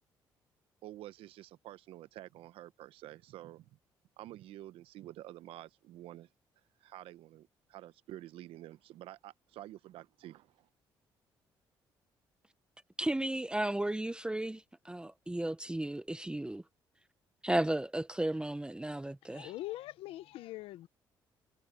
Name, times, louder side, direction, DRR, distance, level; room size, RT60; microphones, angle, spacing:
voice 1, 0.8-3.8 4.2-6.3 6.8-10.7, right 14 dB, 80° right, 0.9 m, -49 dB
voice 2, 13.0-16.6 17.4-19.5, right 1 dB, 10° right, 0.8 m, -34 dB
voice 3, 19.3-20.9, left 16 dB, 80° left, 1.1 m, -42 dB
supercardioid pair, 70°, 9 cm